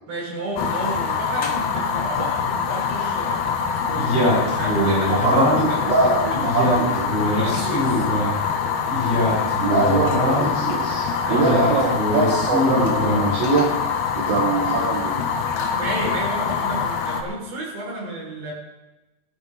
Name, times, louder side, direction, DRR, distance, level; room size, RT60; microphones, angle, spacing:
voice 1, 0.1-3.4 3.8-6.1 7.2-8.1 11.2-11.7 15.7-18.5, right 2 dB, 55° right, -6 dB, 7.7 m, -31 dB
Fire, 0.6-17.2, left 6 dB, 65° left, 2.7 m, -25 dB
Male speech man speaking, 3.9-5.8 6.3-8.3 8.9-10.6 11.3-13.3, left 1 dB, 30° left, 6.4 m, -23 dB
voice 2, 5.1-7.1 9.6-13.7 14.2-15.2, right 3 dB, 85° right, -8 dB, 5.6 m, -22 dB
17.5 x 11.5 x 4.1 m, 1.0 s
omnidirectional pair, 5.1 m